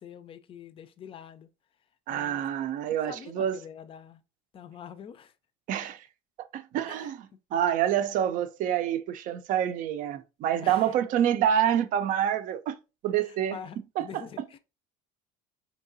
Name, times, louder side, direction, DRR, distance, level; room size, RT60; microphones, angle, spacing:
voice 1, 0.0-1.5 2.1-2.4 2.9-4.2 4.5-5.3 6.9-7.4 10.6-10.9 13.2-14.6, left 8 dB, 35° left, 0.5 m, -45 dB
voice 2, 2.1-3.6 5.7-6.0 6.5-12.8 13.0-13.6 14.0-14.1, right 10 dB, 55° right, 0.5 m, -27 dB
4.6 x 2.8 x 2.6 m
supercardioid pair, 105°, 16 cm